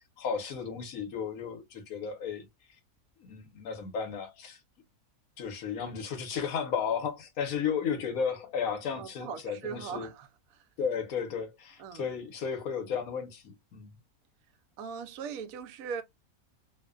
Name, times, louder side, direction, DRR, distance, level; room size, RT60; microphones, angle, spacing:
voice 1, 0.2-2.5 3.2-4.6 5.4-10.1 10.8-13.9, left 6 dB, 80° left, 1.3 m, -34 dB
voice 2, 9.0-10.7 11.8-12.1 14.8-16.0, right 6 dB, 75° right, 1.0 m, -40 dB
2.9 x 2.1 x 2.3 m
omnidirectional pair, 1.5 m